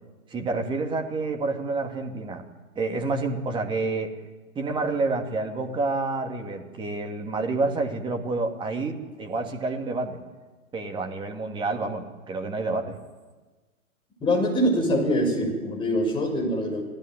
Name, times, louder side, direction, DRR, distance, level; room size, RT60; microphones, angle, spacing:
voice 1, 0.3-2.5 2.8-4.1 4.6-10.2 10.7-13.0, right 3 dB, 10° right, 4 dB, 2.4 m, -28 dB
voice 2, 14.2-16.8, equal, 10° left, 0 dB, 6.8 m, -24 dB
27.5 x 18.0 x 9.5 m, 1.3 s
figure-of-eight pair, 130°, 43 cm